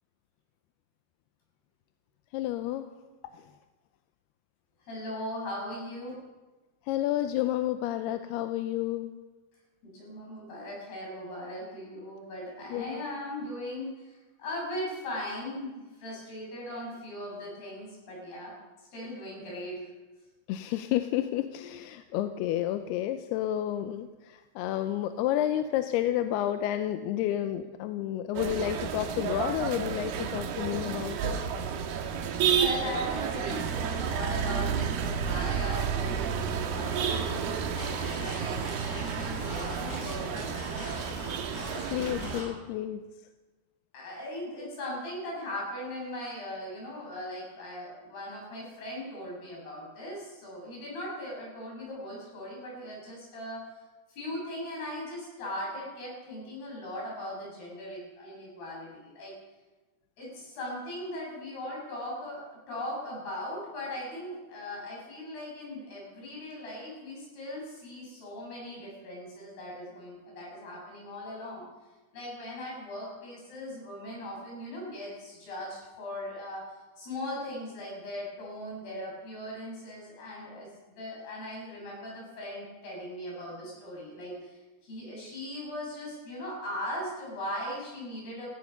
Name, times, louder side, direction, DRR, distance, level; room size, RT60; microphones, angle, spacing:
voice 1, 2.3-2.9 3.3-3.5 6.9-9.1 12.7-13.0 20.5-31.4 41.9-43.0, left 12 dB, 90° left, 8 dB, 2.7 m, -30 dB
voice 2, 4.8-6.1 9.8-18.5 18.9-19.9 32.4-40.9 43.9-53.8 54.1-59.4 60.2-71.6 72.1-76.6 77.0-88.5, left 1 dB, 75° left, -3 dB, 8.4 m, -39 dB
sound 1, 28.4-42.4, right 7 dB, 75° right, 3.0 m, -31 dB
sound 2, 37.3-42.5, left 1 dB, 50° left, 8.4 m, -42 dB
16.5 x 15.5 x 5.5 m, 1.2 s
omnidirectional pair, 4.5 m